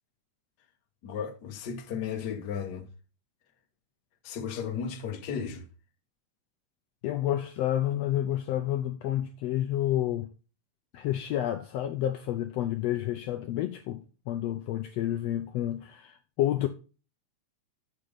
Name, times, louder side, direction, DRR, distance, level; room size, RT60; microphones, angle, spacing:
voice 1, 1.0-2.9 4.2-5.7, left 7 dB, 50° left, 1.2 m, -34 dB
voice 2, 7.0-10.3 10.9-16.7, left 12 dB, 75° left, 1.6 m, -30 dB
7.6 x 6.9 x 5.0 m
omnidirectional pair, 3.4 m